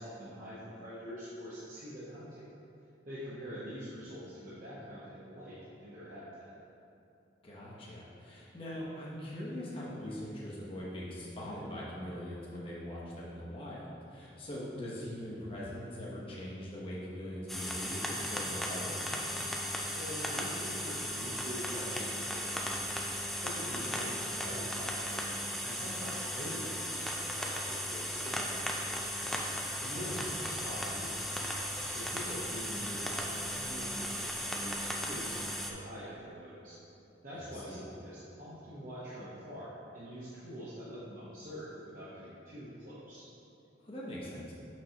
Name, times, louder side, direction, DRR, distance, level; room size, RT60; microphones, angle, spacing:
voice 1, 0.0-2.4 3.0-5.6 5.8-6.5 19.8-22.8 23.4-29.4 29.8-35.3 35.6-36.8 37.2-43.2, equal, 50° right, -10 dB, 1.1 m, -45 dB
voice 2, 7.4-19.1 29.9-30.2 37.3-37.8 43.8-44.5, equal, 30° left, -6 dB, 0.9 m, -42 dB
sound 1, 17.5-35.7, equal, ahead, 0.4 m, -36 dB
6.1 x 6.0 x 2.9 m, 2.8 s
head